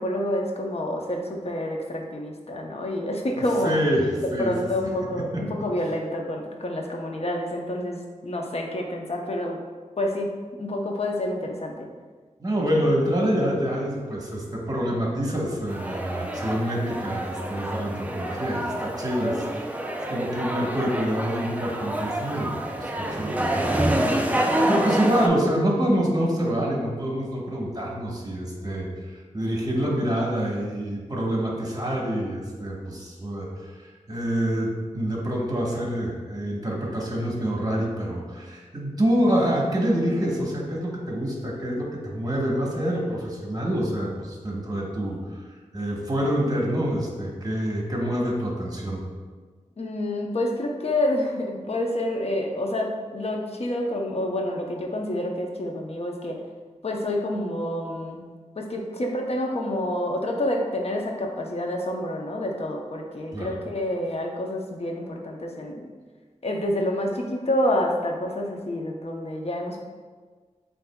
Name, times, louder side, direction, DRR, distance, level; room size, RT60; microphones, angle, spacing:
voice 1, 0.0-3.8 4.2-9.6 10.0-10.3 10.6-11.9 49.8-56.4 56.8-58.2 58.6-65.9 66.4-69.8, left 1 dB, 55° left, 1 dB, 0.7 m, -28 dB
voice 2, 3.4-4.5 5.3-5.4 12.4-45.4 45.7-49.0 63.3-63.6, equal, 30° right, -2 dB, 1.2 m, -26 dB
sound 1, 15.7-25.3, right 1 dB, 10° right, 0.5 m, -27 dB
7.7 x 2.7 x 2.3 m, 1.5 s
cardioid pair, 50°, 13 cm